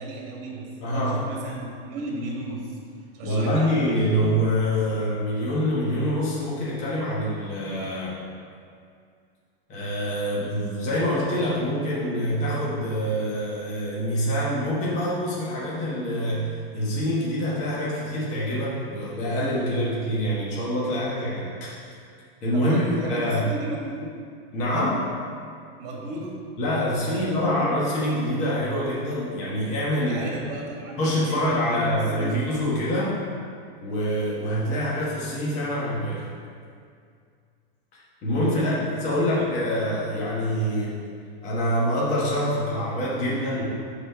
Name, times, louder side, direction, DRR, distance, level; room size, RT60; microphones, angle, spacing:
voice 1, 0.0-2.8 3.1-3.8 14.2-14.3 22.5-24.2 25.8-26.5 26.9-27.7 29.9-32.8 38.6-39.7, right 2 dB, 40° right, -2 dB, 2.0 m, -35 dB
voice 2, 0.8-1.2 3.2-8.2 9.7-21.8 22.4-22.8 23.1-23.5 24.5-25.1 26.6-30.3 31.0-33.1 33.8-36.2 38.2-40.9 41.4-43.6, equal, 25° left, -7 dB, 1.3 m, -25 dB
8.8 x 4.3 x 5.7 m, 2.2 s
supercardioid pair, 175°, 31 cm